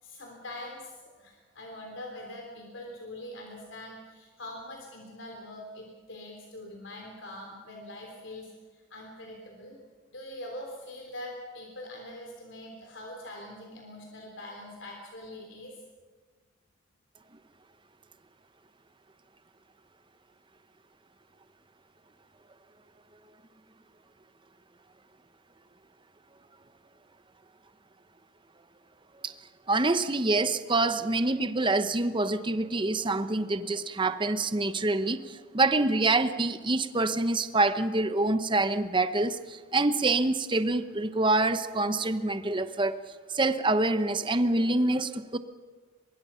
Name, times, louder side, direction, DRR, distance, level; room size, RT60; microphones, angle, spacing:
voice 1, 0.0-9.8 10.1-15.8, left 1 dB, 70° left, 1 dB, 3.5 m, -43 dB
voice 2, 29.7-43.0 43.3-45.4, right 2 dB, 25° right, 11 dB, 0.9 m, -26 dB
24.0 x 22.5 x 5.7 m, 1.5 s
head